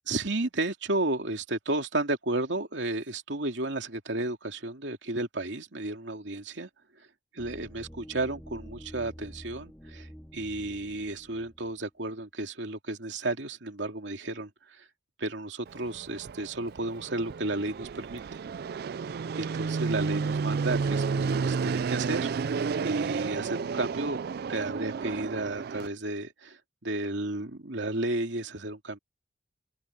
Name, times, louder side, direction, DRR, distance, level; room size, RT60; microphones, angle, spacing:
voice 1, 0.1-6.7 7.3-14.8 15.2-18.4 19.3-24.2 24.5-29.0, right 2 dB, 80° right, 2.6 m, -33 dB
sound 1, 7.4-11.8, equal, 5° left, 3.1 m, -48 dB
Fixed-wing aircraft airplane, 15.7-25.9, right 5 dB, 60° right, 0.4 m, -31 dB
open air
head